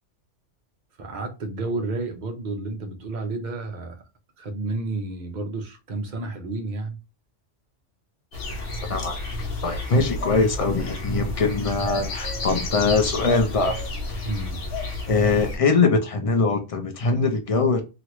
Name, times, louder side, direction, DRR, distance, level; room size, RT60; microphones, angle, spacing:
voice 1, 1.0-4.0 4.4-7.0 14.2-14.6, right 2 dB, 45° right, 0.7 m, -31 dB
sound 1, 8.3-15.6, left 2 dB, 85° left, 1.2 m, -31 dB
voice 2, 8.9-9.3 9.6-13.8 14.1-14.2 15.1-17.8, left 3 dB, 60° left, 0.3 m, -22 dB
3.1 x 2.4 x 2.9 m
omnidirectional pair, 1.2 m